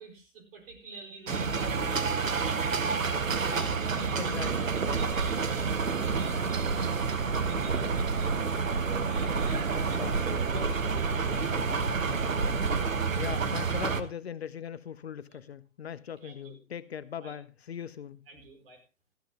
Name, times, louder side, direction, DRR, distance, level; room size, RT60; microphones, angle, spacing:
voice 1, 0.0-3.0 3.4-7.1 7.5-8.7 9.1-10.3 15.3-15.4 16.2-16.6 17.2-17.4 18.3-18.8, right 3 dB, 45° right, 4.9 m, -49 dB
sound 1, 1.3-14.0, right 5 dB, 75° right, 1.3 m, -30 dB
voice 2, 4.1-4.7 9.7-10.7 13.2-18.3, left 8 dB, 50° left, 0.7 m, -40 dB
sound 2, 4.4-12.8, right 4 dB, 90° right, 0.9 m, -33 dB
20.0 x 13.5 x 2.2 m
figure-of-eight pair, 130°, 40 cm